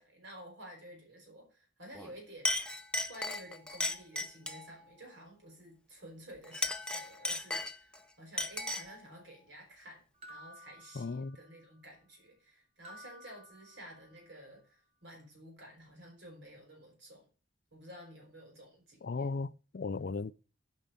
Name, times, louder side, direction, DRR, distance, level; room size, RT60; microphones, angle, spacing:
voice 1, 0.0-2.6 3.1-10.0 10.3-17.3 17.7-19.4, right 1 dB, 70° right, 4.8 m, -52 dB
Chink clink, 1.9-2.1 2.4-4.7 6.4-8.0 8.4-9.0, left 2 dB, 5° left, 0.6 m, -35 dB
sound 1, 10.2-11.7 12.8-14.3, equal, 30° right, 1.0 m, -54 dB
voice 2, 10.9-11.4 19.0-20.3, left 4 dB, 50° left, 0.4 m, -36 dB
9.0 x 5.4 x 8.0 m
head